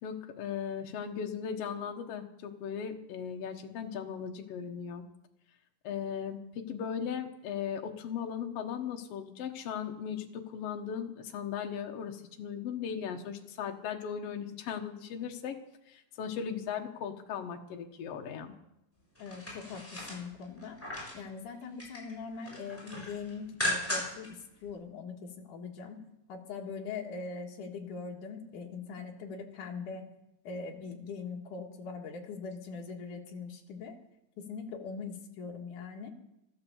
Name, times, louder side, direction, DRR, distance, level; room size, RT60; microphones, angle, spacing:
voice 1, 0.0-5.0 5.8-15.6 15.9-18.5, left 7 dB, 75° left, 4 dB, 1.4 m, -37 dB
voice 2, 19.2-20.8 21.1-26.0 26.3-30.0 30.4-34.0 34.4-36.1, left 5 dB, 60° left, 1 dB, 3.0 m, -41 dB
sound 1, 19.2-21.2 21.6-22.1 22.4-24.3 24.6-24.7, left 1 dB, 5° left, 6.4 m, -36 dB
13.5 x 13.0 x 7.2 m, 0.87 s
omnidirectional pair, 4.6 m